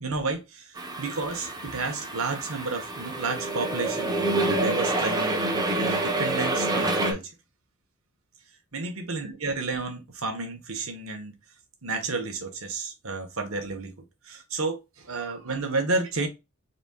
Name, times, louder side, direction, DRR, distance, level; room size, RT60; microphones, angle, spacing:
voice 1, 0.0-5.4 5.8-7.3 8.7-11.3 11.8-13.9 14.2-16.3, right 3 dB, 75° right, 1.3 m, -31 dB
sound 1, 0.8-7.1, right 2 dB, 20° right, 1.0 m, -27 dB
4.3 x 4.0 x 2.4 m
head